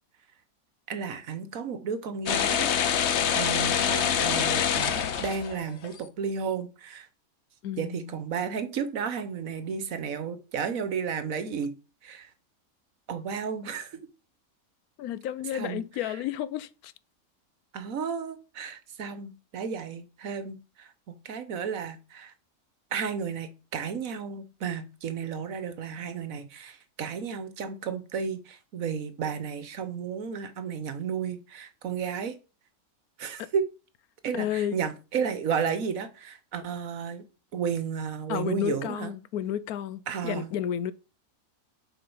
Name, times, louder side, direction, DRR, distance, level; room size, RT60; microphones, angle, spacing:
voice 1, 0.9-2.7 3.3-7.1 7.8-11.7 12.0-12.3 13.1-14.0 15.5-16.1 17.7-22.3 22.9-32.4 33.2-33.6 34.2-37.2 37.5-39.1 40.1-40.5, right 6 dB, 70° right, 1.4 m, -33 dB
sound 1, 2.3-5.9, left 8 dB, 55° left, 0.9 m, -25 dB
voice 2, 7.6-8.2 15.0-16.9 33.4-33.5 34.3-34.8 38.3-40.9, left 10 dB, 90° left, 1.1 m, -32 dB
7.4 x 4.8 x 5.4 m
omnidirectional pair, 1.5 m